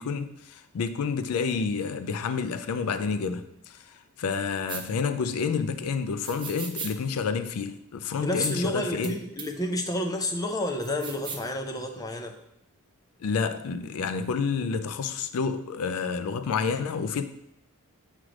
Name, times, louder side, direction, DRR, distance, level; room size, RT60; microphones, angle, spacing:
voice 1, 0.0-9.1 13.2-17.2, left 5 dB, 75° left, 0.4 m, -29 dB
sound 1, 4.7-4.8 6.2-6.9 8.4-8.5 9.0-9.1 9.4-9.5 10.8-11.5, right 6 dB, 20° right, 0.8 m, -37 dB
voice 2, 8.2-12.3, left 1 dB, 15° left, 0.6 m, -30 dB
7.3 x 3.2 x 5.0 m
head